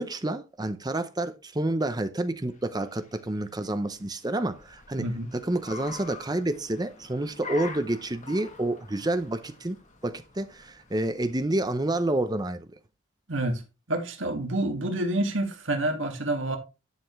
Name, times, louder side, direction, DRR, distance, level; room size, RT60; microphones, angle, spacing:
voice 1, 0.0-5.0 5.3-12.7, right 1 dB, 20° right, 0.7 m, -29 dB
Car, 2.1-12.4, left 4 dB, 35° left, 1.8 m, -46 dB
voice 2, 5.0-5.3 13.3-13.6 13.9-16.6, right 1 dB, 70° right, 2.2 m, -28 dB
11.0 x 7.0 x 3.2 m
head